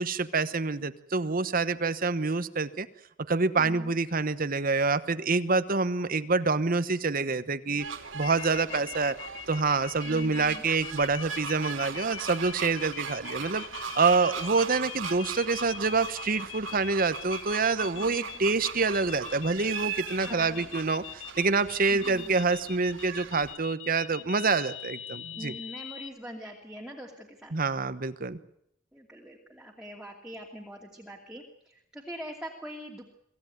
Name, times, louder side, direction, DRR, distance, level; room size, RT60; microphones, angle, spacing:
voice 1, 0.0-2.9 3.3-7.8 8.1-9.1 9.5-25.5 27.5-28.4, right 4 dB, 45° right, 13 dB, 1.0 m, -27 dB
voice 2, 3.6-3.9 10.0-10.7 17.8-18.5 20.2-20.7 21.9-22.4 25.4-27.7 28.9-33.1, equal, 5° right, -1 dB, 2.6 m, -43 dB
sound 1, 7.8-23.5, right 6 dB, 80° right, 3.1 m, -40 dB
sound 2, 8.2-26.1, left 10 dB, 75° left, 1.5 m, -42 dB
25.0 x 16.0 x 9.3 m, 0.77 s
head